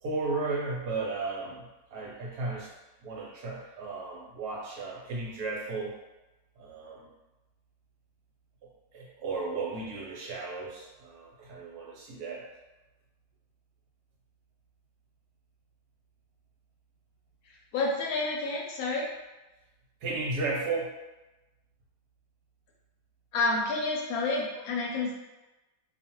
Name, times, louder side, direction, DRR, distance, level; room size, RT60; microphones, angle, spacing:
voice 1, 0.0-2.7 3.0-5.9 6.6-7.1 8.9-12.4 20.0-20.9, right 3 dB, 75° right, -3 dB, 1.2 m, -34 dB
voice 2, 17.7-19.1 23.3-25.1, left 3 dB, 70° left, -2 dB, 1.0 m, -29 dB
2.6 x 2.4 x 2.8 m, 1.1 s
omnidirectional pair, 1.7 m